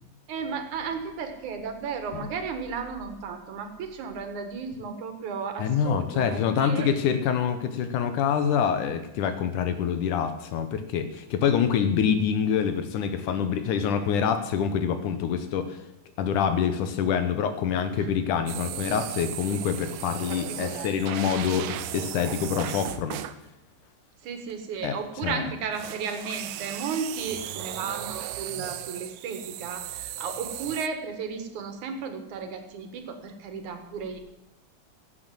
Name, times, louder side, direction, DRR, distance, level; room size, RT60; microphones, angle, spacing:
voice 1, 0.3-6.9 17.9-18.1 20.3-21.0 24.2-34.2, right 5 dB, 70° right, 7 dB, 3.0 m, -34 dB
voice 2, 5.6-15.8 16.2-23.2 24.8-25.0 25.2-25.5, left 7 dB, 75° left, 9 dB, 2.4 m, -26 dB
sound 1, 18.5-23.4 25.7-30.9, right 13 dB, 90° right, 2.3 m, -36 dB
15.5 x 8.3 x 7.6 m, 0.98 s
omnidirectional pair, 3.7 m